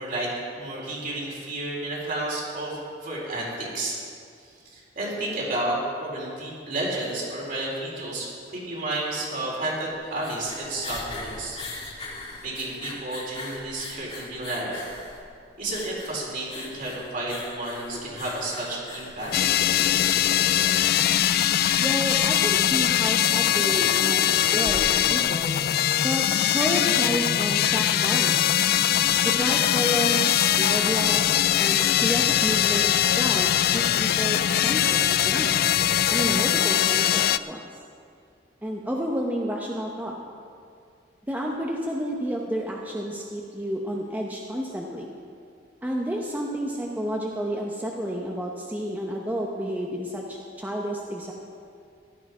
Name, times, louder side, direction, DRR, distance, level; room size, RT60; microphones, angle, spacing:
voice 1, 0.0-4.0 4.7-11.6 12.4-14.8 15.6-19.3, right 1 dB, 50° right, -4 dB, 4.1 m, -31 dB
sound 1, 10.0-25.4, left 2 dB, 35° left, 1.9 m, -41 dB
sound 2, 19.3-37.4, left 11 dB, 60° left, 0.4 m, -22 dB
voice 2, 21.8-25.5 26.0-26.2 26.5-28.4 29.2-35.7 36.1-37.6 38.6-40.1 41.3-45.1 45.8-51.3, equal, 10° right, -1 dB, 0.9 m, -30 dB
15.5 x 11.5 x 4.9 m, 2.3 s
head